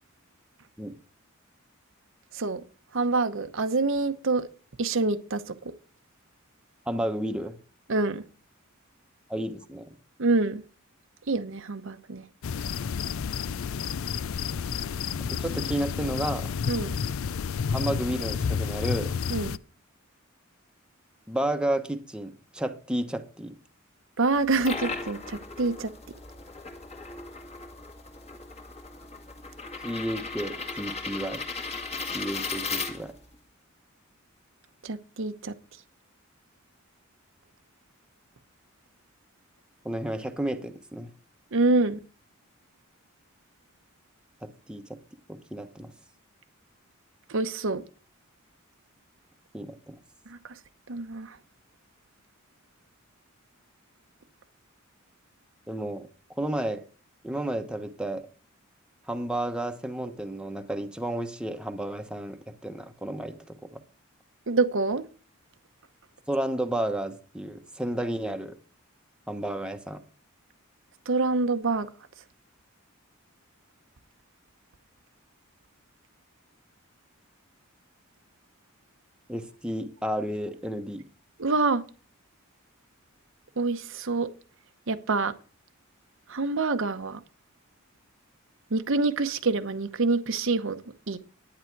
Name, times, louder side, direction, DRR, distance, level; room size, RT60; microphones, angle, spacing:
voice 1, 2.9-4.5 4.8-5.7 7.9-8.2 10.2-10.6 11.3-12.2 16.7-17.0 19.3-19.6 24.2-25.9 34.8-35.6 41.5-42.0 47.3-47.8 50.3-50.4 50.9-51.4 64.5-65.0 71.1-71.9 81.4-81.8 83.6-84.3 84.9-85.3 86.3-87.2 88.7-90.8 91.1-91.2, right 3 dB, 65° right, 0.9 m, -26 dB
voice 2, 6.9-7.6 9.3-9.9 15.3-16.5 17.7-19.1 21.3-23.5 29.8-31.4 32.1-33.1 39.8-41.1 44.4-45.0 45.3-45.9 49.5-50.0 55.7-56.1 56.4-56.8 57.2-58.2 59.1-62.4 62.6-63.8 66.3-68.6 69.3-70.0 79.3-81.0, right 1 dB, 5° right, 1.0 m, -32 dB
sound 1, 12.4-19.6, left 6 dB, 75° left, 0.5 m, -30 dB
sound 2, 24.4-33.4, left 4 dB, 30° left, 1.8 m, -37 dB
10.5 x 9.6 x 4.6 m
head